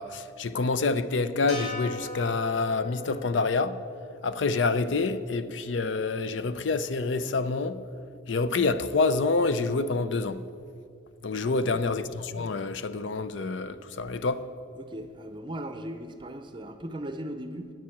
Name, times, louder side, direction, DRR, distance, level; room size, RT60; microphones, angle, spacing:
voice 1, 0.0-3.8 4.2-7.8 8.3-10.4 11.2-14.4, left 3 dB, 80° left, 0.5 m, -27 dB
sound 1, 1.5-5.8, left 3 dB, 40° left, 3.1 m, -41 dB
voice 2, 11.4-11.8 14.8-17.7, right 1 dB, 25° right, 0.6 m, -38 dB
9.5 x 7.4 x 8.5 m
head